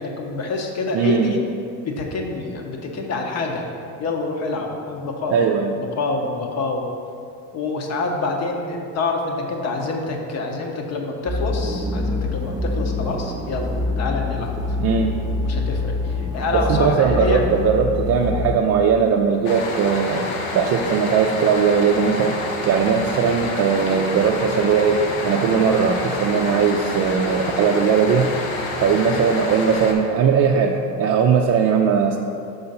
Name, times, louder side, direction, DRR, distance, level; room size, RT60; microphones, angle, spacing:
voice 1, 0.0-1.4 1.8-3.6 4.0-5.5 5.7-6.9 7.5-14.8 15.4-17.6, left 3 dB, 45° left, 2 dB, 0.9 m, -26 dB
voice 2, 0.9-1.3 5.3-5.7 14.8-15.1 16.7-20.3 20.5-28.3 28.8-32.2, right 6 dB, 45° right, 1 dB, 0.4 m, -19 dB
sound 1, 11.3-18.6, left 2 dB, 10° right, 0.7 m, -25 dB
sound 2, 19.4-29.9, left 2 dB, 75° left, 1.0 m, -28 dB
5.6 x 3.9 x 5.5 m, 2.5 s
cardioid pair, 115°, 37 cm